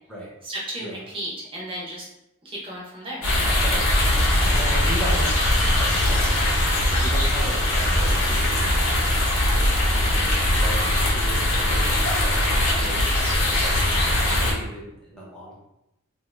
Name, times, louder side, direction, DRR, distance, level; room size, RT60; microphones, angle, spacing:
voice 1, 0.4-2.1 2.4-3.3 4.2-4.4, right 1 dB, 25° right, -3 dB, 0.7 m, -34 dB
sound 1, 3.2-14.5, left 1 dB, 75° left, 0.9 m, -21 dB
voice 2, 3.6-6.5 6.9-9.4 9.9-13.1 13.4-15.6, right 1 dB, 5° left, -7 dB, 0.8 m, -37 dB
2.6 x 2.5 x 3.3 m, 0.86 s
head